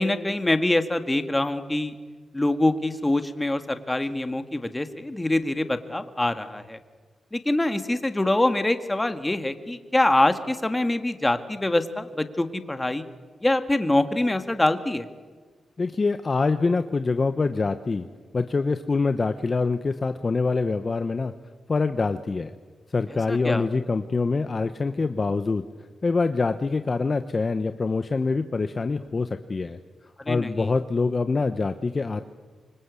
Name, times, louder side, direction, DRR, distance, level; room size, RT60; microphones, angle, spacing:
voice 1, 0.0-2.0 2.3-6.8 7.3-13.1 13.4-15.1 23.3-23.7 30.3-30.7, left 1 dB, 15° left, 8 dB, 1.8 m, -24 dB
voice 2, 15.8-18.1 18.3-21.3 21.7-22.5 22.9-25.6 26.0-29.8 30.3-32.2, left 4 dB, 35° left, 9 dB, 1.0 m, -25 dB
26.5 x 23.5 x 8.4 m, 1.5 s
cardioid pair, 95°, 0 cm